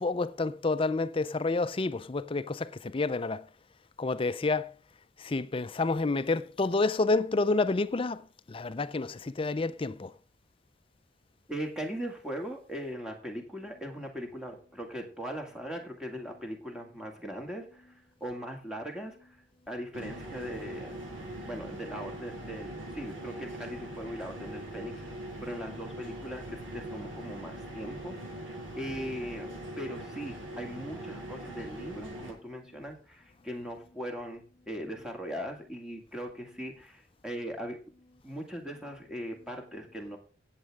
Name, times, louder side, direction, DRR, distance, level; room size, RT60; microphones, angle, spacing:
voice 1, 0.0-3.5 4.0-4.7 5.2-8.2 8.5-10.1, left 3 dB, 30° left, 0.4 m, -29 dB
voice 2, 11.5-17.8 18.2-19.1 19.7-20.9 21.4-24.9 25.4-28.1 28.8-29.5 29.8-37.8 38.2-40.2, equal, 5° right, 1.9 m, -39 dB
sound 1, 19.9-32.3, right 1 dB, 80° right, 4.9 m, -41 dB
17.5 x 7.5 x 3.5 m
head